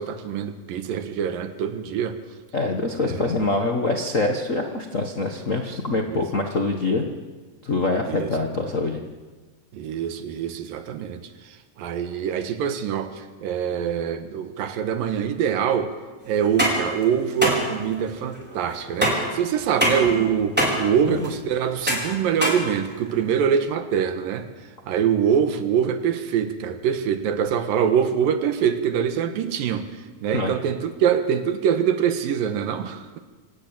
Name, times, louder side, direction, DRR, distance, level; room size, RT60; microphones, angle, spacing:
voice 1, 0.0-2.2 3.0-3.2 6.0-6.2 8.0-8.3 9.7-15.9 16.3-24.5 24.9-29.9 30.2-33.2, right 8 dB, 85° right, 8 dB, 3.0 m, -24 dB
voice 2, 2.5-7.0 7.6-9.0 21.0-21.2 30.3-30.5, left 2 dB, 60° left, 3 dB, 0.8 m, -24 dB
sound 1, 16.4-23.3, equal, 5° right, 4.6 m, -25 dB
27.0 x 12.0 x 9.0 m, 1.3 s
omnidirectional pair, 3.9 m